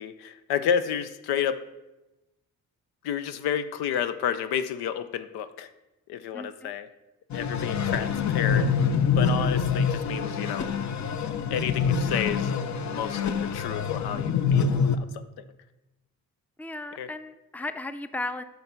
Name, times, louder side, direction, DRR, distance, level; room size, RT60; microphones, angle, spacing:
voice 1, 0.0-1.6 3.0-5.7 6.1-6.9 7.3-8.7 9.2-10.7 11.5-12.6 12.9-15.3 17.0-17.1, left 8 dB, 90° left, 13 dB, 0.6 m, -30 dB
voice 2, 6.3-6.7 16.6-18.4, left 2 dB, 5° left, 11 dB, 0.5 m, -35 dB
sound 1, 7.3-15.0, left 6 dB, 50° left, 0.7 m, -26 dB
6.4 x 5.5 x 5.8 m, 1.0 s
cardioid pair, 65°, 38 cm